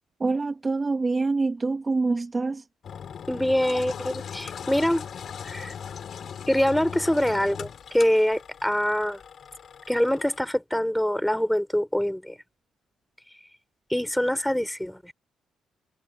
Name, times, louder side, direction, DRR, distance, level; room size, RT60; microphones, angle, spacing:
voice 1, 0.2-2.6, right 3 dB, 25° right, 1.3 m, -25 dB
Engine, 2.8-10.4, left 7 dB, 55° left, 3.2 m, -39 dB
voice 2, 3.3-5.1 5.4-5.7 6.5-9.2 9.9-12.4 13.9-15.1, equal, 5° left, 3.7 m, -24 dB
cardioid pair, 90°, 0 cm